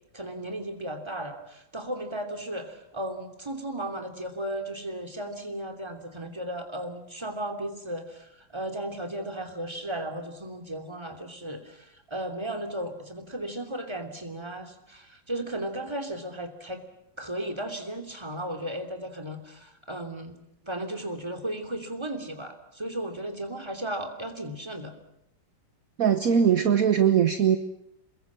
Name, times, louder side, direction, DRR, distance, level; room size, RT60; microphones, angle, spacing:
voice 1, 0.1-16.8 17.2-20.3 20.6-24.9, right 1 dB, 15° right, 5 dB, 3.0 m, -35 dB
voice 2, 26.0-27.6, right 8 dB, 50° right, 9 dB, 1.5 m, -21 dB
28.5 x 21.5 x 7.6 m, 0.83 s
omnidirectional pair, 2.0 m